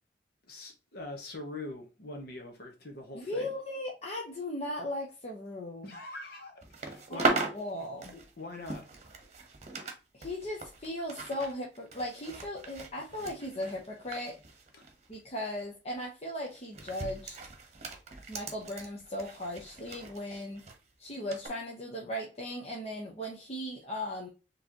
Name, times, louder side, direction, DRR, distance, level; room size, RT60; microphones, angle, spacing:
voice 1, 0.5-3.5 5.8-6.5 6.8-7.3 8.1-8.8 14.7-14.9 20.3-20.4, left 2 dB, 60° left, 1.1 m, -43 dB
voice 2, 3.1-5.9 7.1-8.1 10.1-14.4 15.1-17.4 18.3-20.6 21.0-24.3, left 1 dB, 40° left, 1.0 m, -37 dB
sound 1, 6.6-10.0 10.2-15.2 15.5-15.7 16.5-20.8 21.3-21.5, right 3 dB, 40° right, 1.0 m, -38 dB
4.8 x 3.2 x 2.9 m
head